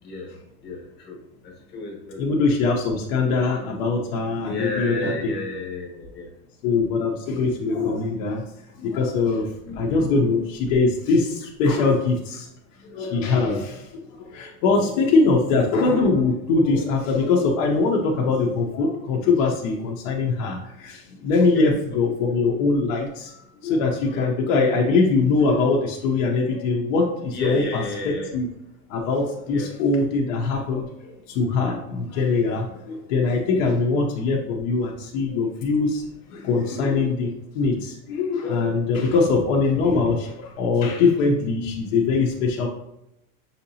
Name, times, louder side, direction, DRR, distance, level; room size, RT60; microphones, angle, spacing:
voice 1, 0.0-2.4 4.4-6.3 9.3-10.0 21.5-21.7 24.1-24.3 27.3-28.3 29.5-29.7 33.5-33.8 39.3-39.6, left 2 dB, 25° left, -2 dB, 1.1 m, -33 dB
voice 2, 2.2-5.3 6.6-8.4 8.8-12.5 12.8-28.5 28.9-36.0 36.3-42.7, left 3 dB, 60° left, -1 dB, 0.8 m, -22 dB
5.7 x 2.8 x 2.7 m, 0.84 s
supercardioid pair, 150°, 43 cm